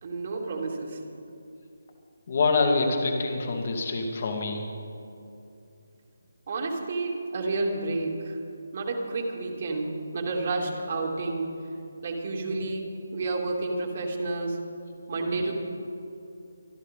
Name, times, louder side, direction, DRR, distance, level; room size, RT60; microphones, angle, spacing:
voice 1, 0.0-1.0 6.5-8.4 8.7-11.5 12.0-12.9 13.1-14.6 15.1-15.5, right 3 dB, 50° right, 0 dB, 2.7 m, -30 dB
voice 2, 2.3-4.7 15.4-15.5, left 3 dB, 50° left, 2 dB, 2.3 m, -26 dB
25.5 x 11.5 x 3.8 m, 2.7 s
figure-of-eight pair, 155°, 0 cm